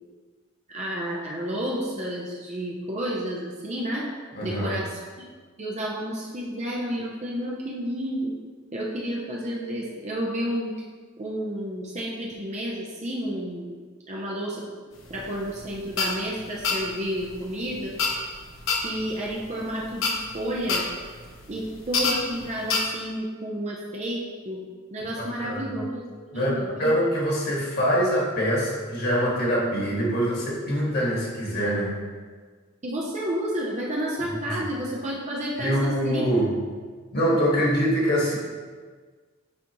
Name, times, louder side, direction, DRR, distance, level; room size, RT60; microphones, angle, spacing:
voice 1, 0.7-4.1 4.4-5.0 5.6-8.3 8.7-10.7 11.2-13.8 14.1-14.7 15.1-17.9 18.8-20.9 21.5-24.6 24.9-27.0 32.8-36.2, equal, 35° right, -4 dB, 0.8 m, -31 dB
voice 2, 4.3-4.8 25.2-25.9 26.3-26.5 26.8-32.0 34.5-34.6 35.6-36.6 37.1-38.4, equal, 50° left, -5 dB, 1.9 m, -24 dB
sound 1, 15.0-22.8, left 4 dB, 70° left, 1.0 m, -29 dB
9.6 x 4.2 x 3.0 m, 1.5 s
head